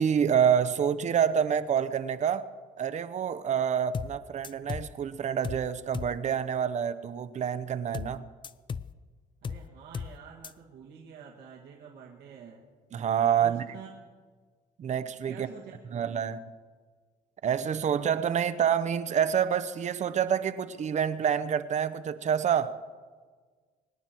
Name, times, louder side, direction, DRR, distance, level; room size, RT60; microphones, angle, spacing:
voice 1, 0.0-2.5 2.8-8.2 12.9-13.6 14.8-15.5 15.9-16.4 17.4-22.8, right 8 dB, 45° right, 0.8 m, -27 dB
sound 1, 3.9-4.2 4.4-4.9 5.4-5.7 5.9-6.2 7.9-8.2 8.4-8.9 9.4-9.7 9.9-10.2 10.4-10.5, left 6 dB, 30° left, 0.4 m, -36 dB
voice 2, 9.4-12.6 13.4-14.1 15.3-16.1, right 7 dB, 85° right, 2.1 m, -48 dB
24.5 x 10.0 x 4.5 m
cardioid pair, 110°, 17 cm